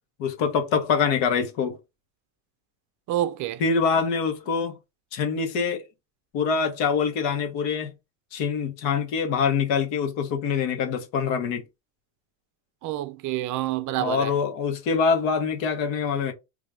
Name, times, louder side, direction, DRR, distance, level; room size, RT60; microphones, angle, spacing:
voice 1, 0.2-1.8 3.6-4.8 5.1-5.8 6.3-7.9 8.3-11.6 14.0-16.3, left 5 dB, 65° left, 1.3 m, -24 dB
voice 2, 3.1-3.6 12.8-14.3, right 13 dB, 40° right, 0.5 m, -28 dB
3.3 x 2.5 x 3.4 m
supercardioid pair, 120°, 49 cm